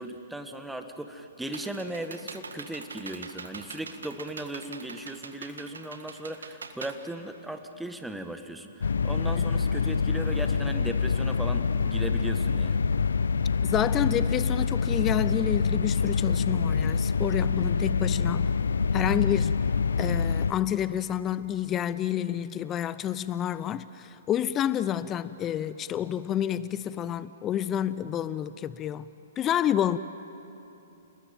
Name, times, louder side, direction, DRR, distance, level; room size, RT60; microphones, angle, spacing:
voice 1, 0.0-12.8, right 1 dB, 5° right, 7 dB, 1.6 m, -37 dB
Computer keyboard, 1.0-7.9, right 4 dB, 80° right, 1.8 m, -43 dB
sound 1, 8.8-20.5, left 5 dB, 75° left, 0.8 m, -26 dB
voice 2, 13.6-18.5 18.9-19.5 20.0-29.1 29.4-30.0, left 10 dB, 25° left, 16 dB, 0.6 m, -29 dB
29.5 x 20.0 x 9.2 m, 2.9 s
figure-of-eight pair, 120°, 0 cm